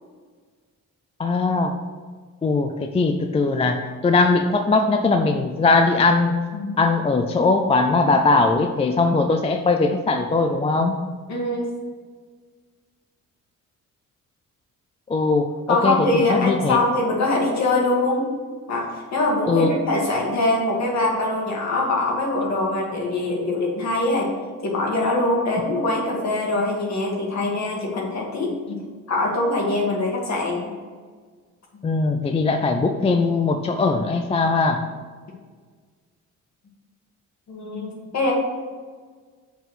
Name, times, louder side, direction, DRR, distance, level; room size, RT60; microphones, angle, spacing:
voice 1, 1.2-1.7 2.4-6.3 6.8-11.0 15.1-16.8 19.5-19.7 31.8-34.8, left 3 dB, 20° left, 5 dB, 0.4 m, -20 dB
voice 2, 11.3-11.7 15.7-18.3 18.7-24.3 24.6-28.8 29.1-30.7 37.5-38.3, left 2 dB, 55° left, -2 dB, 2.1 m, -23 dB
6.9 x 4.3 x 6.5 m, 1.5 s
cardioid pair, 155°, 32 cm